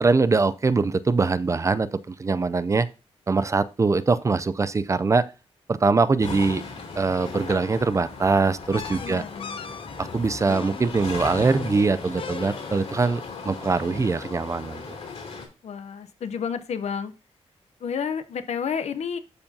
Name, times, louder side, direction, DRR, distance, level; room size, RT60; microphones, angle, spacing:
voice 1, 0.0-2.9 3.3-5.3 5.7-6.6 7.0-9.2 10.0-15.0, right 4 dB, 30° right, 0.4 m, -23 dB
sound 1, 6.2-15.5, left 4 dB, 75° left, 3.1 m, -37 dB
sound 2, 8.7-13.0, left 6 dB, 55° left, 0.6 m, -39 dB
voice 2, 9.0-9.8 15.6-17.1 17.8-19.2, left 7 dB, 90° left, 0.8 m, -31 dB
12.5 x 4.6 x 2.7 m
wide cardioid pair, 125°, 11 cm